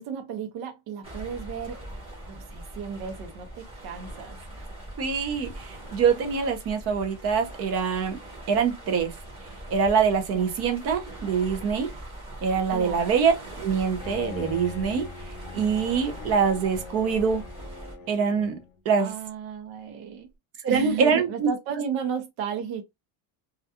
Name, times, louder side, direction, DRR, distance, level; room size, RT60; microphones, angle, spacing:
voice 1, 0.0-1.8 2.3-4.7 10.3-10.6 12.7-13.2 19.0-20.3 20.6-22.8, right 7 dB, 75° right, 0.7 m, -34 dB
sound 1, 1.0-18.0, right 1 dB, 15° right, 0.8 m, -41 dB
voice 2, 5.0-8.2 8.5-9.1 9.7-11.9 12.4-13.3 13.6-15.1 15.5-17.4 18.1-18.6 18.9-19.1 20.6-21.5, right 6 dB, 35° right, 0.4 m, -24 dB
Bowed string instrument, 14.0-18.8, left 6 dB, 40° left, 0.7 m, -41 dB
2.4 x 2.2 x 2.7 m
cardioid pair, 175°, 45 cm